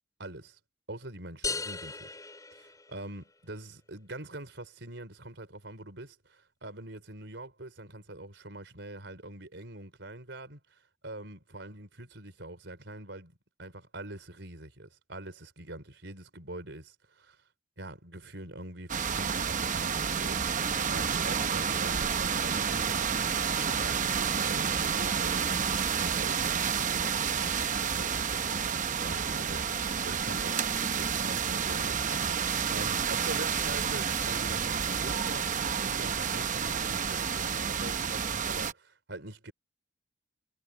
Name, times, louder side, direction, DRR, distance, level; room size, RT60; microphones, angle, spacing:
voice 1, 0.2-0.6 0.9-2.1 2.5-17.4 17.8-20.4 20.9-30.6 30.9-39.5, right 1 dB, 70° right, 4.6 m, -44 dB
sound 1, 1.4-3.3, left 4 dB, 20° left, 5.7 m, -37 dB
sound 2, 18.9-38.7, right 7 dB, 45° right, 0.8 m, -30 dB
head